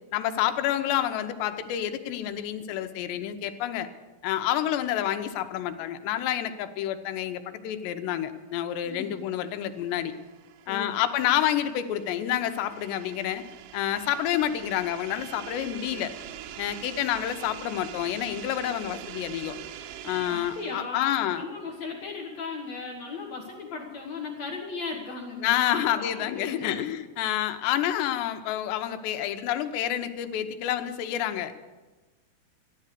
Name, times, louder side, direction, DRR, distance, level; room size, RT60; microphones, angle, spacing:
voice 1, 0.1-3.9 4.2-10.1 10.7-13.4 13.7-16.1 16.6-19.6 20.0-21.4 25.4-31.6, left 11 dB, 85° left, 8 dB, 3.0 m, -28 dB
voice 2, 8.8-9.2 10.7-11.0 20.3-26.7, left 4 dB, 60° left, 0 dB, 1.9 m, -37 dB
sound 1, 9.1-21.0, right 10 dB, 85° right, 2.9 m, -44 dB
14.5 x 10.5 x 6.7 m, 1.2 s
omnidirectional pair, 4.9 m